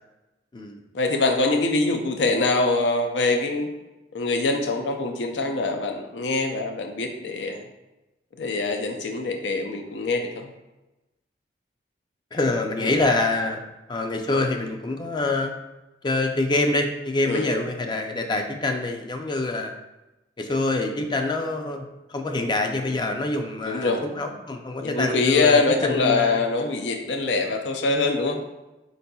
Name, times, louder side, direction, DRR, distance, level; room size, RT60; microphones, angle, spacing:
voice 1, 0.9-3.7 4.1-7.6 8.4-10.5 12.8-13.0 17.2-17.5 23.6-24.0 24.8-28.4, left 3 dB, 85° left, 4 dB, 0.5 m, -24 dB
voice 2, 12.3-13.6 13.9-15.5 16.0-19.7 20.4-26.4, left 2 dB, 25° left, 4 dB, 0.4 m, -25 dB
4.8 x 4.0 x 2.3 m, 1.0 s
head